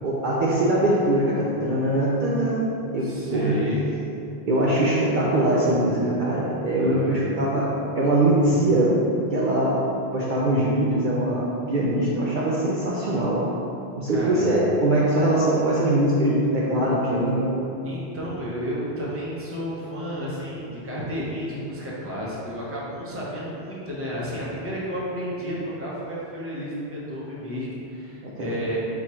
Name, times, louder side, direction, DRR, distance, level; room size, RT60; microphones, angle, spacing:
voice 1, 0.0-2.7 2.9-3.6 4.5-7.7 8.0-8.9 9.3-9.8 10.1-13.4 14.0-17.5 28.2-28.6, right 1 dB, 60° right, -6 dB, 0.6 m, -22 dB
voice 2, 3.0-3.9 6.7-7.3 14.1-14.5 17.8-28.8, equal, 15° right, -6 dB, 0.6 m, -32 dB
4.3 x 2.4 x 4.2 m, 2.8 s
omnidirectional pair, 1.1 m